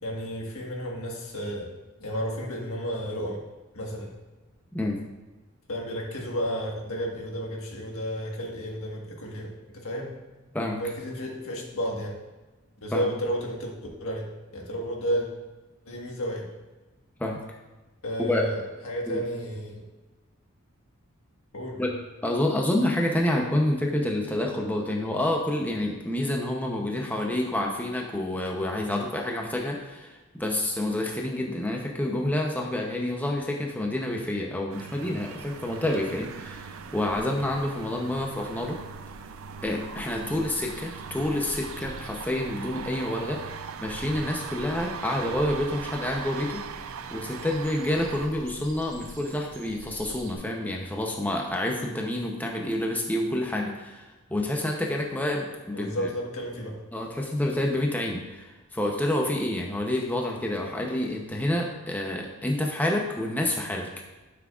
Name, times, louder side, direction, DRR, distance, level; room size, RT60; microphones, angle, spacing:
voice 1, 0.0-1.7 2.0-3.4 3.7-4.1 5.7-10.1 10.8-12.2 12.8-13.7 14.0-15.3 15.9-16.5 18.0-19.8 21.5-21.9 55.7-56.8, equal, 85° left, 0 dB, 1.5 m, -32 dB
voice 2, 22.2-38.8 39.6-43.4 43.8-46.7 47.1-56.1 56.9-63.9, left 1 dB, 10° left, 0 dB, 0.7 m, -28 dB
sound 1, 34.7-48.3, right 6 dB, 80° right, 0.5 m, -40 dB
sound 2, 35.2-50.3, right 1 dB, 60° right, 0.9 m, -48 dB
11.0 x 6.0 x 2.4 m, 1.2 s
head